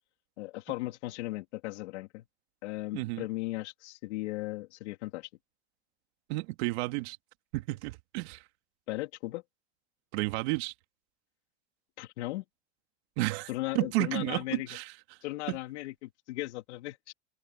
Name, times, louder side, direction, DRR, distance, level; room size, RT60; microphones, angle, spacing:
voice 1, 0.4-2.3 2.6-5.3 8.9-9.4 12.0-12.4 13.5-14.7 15.2-17.1, left 19 dB, 80° left, 3.2 m, -37 dB
voice 2, 2.9-3.3 6.3-7.2 7.5-8.4 10.1-10.7 13.2-13.5 13.7-14.9, right 22 dB, 70° right, 2.5 m, -31 dB
open air
supercardioid pair, 125°, 34 cm